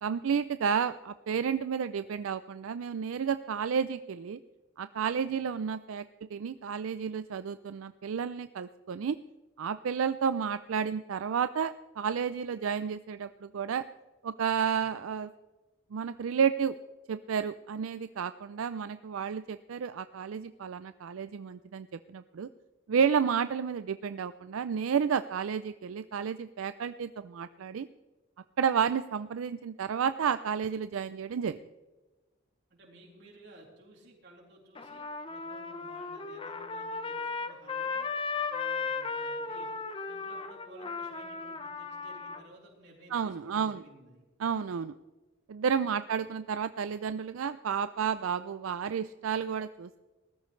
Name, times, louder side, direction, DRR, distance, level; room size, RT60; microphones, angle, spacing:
voice 1, 0.0-4.4 4.8-6.0 6.3-9.2 9.6-13.8 14.2-15.3 15.9-16.8 17.1-22.5 22.9-27.9 28.6-31.6 43.1-43.8 44.4-44.9 45.5-50.0, right 7 dB, 85° right, 12 dB, 0.4 m, -31 dB
voice 2, 32.7-38.1 38.5-39.7 40.1-44.3 46.0-46.1, right 1 dB, 55° right, -2 dB, 4.1 m, -55 dB
Trumpet, 34.7-42.4, left 4 dB, 25° left, 0.7 m, -36 dB
20.0 x 13.5 x 3.2 m, 1.2 s
head